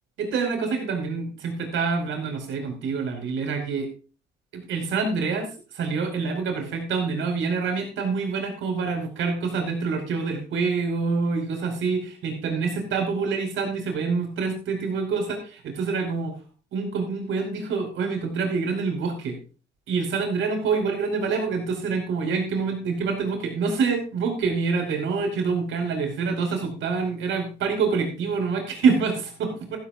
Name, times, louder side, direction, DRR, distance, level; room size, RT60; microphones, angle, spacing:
voice 1, 0.2-3.9 4.5-16.3 16.7-19.4 19.9-29.8, right 5 dB, 80° right, 3 dB, 4.9 m, -26 dB
14.5 x 14.5 x 2.5 m, 0.35 s
cardioid pair, 90°, 20 cm